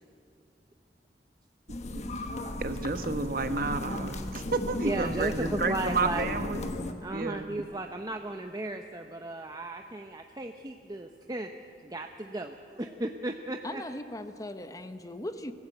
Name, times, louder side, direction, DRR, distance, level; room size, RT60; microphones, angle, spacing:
sound 1, 1.7-6.9, left 1 dB, 40° left, 1.3 m, -35 dB
voice 1, 2.6-6.7 7.1-7.5, right 3 dB, 55° right, 8 dB, 1.2 m, -31 dB
voice 2, 4.8-6.3 7.0-11.5 11.8-13.8, right 2 dB, 20° right, 5 dB, 0.7 m, -35 dB
voice 3, 13.6-15.5, left 1 dB, 20° left, 9 dB, 0.8 m, -38 dB
25.0 x 15.0 x 7.9 m, 2.5 s
head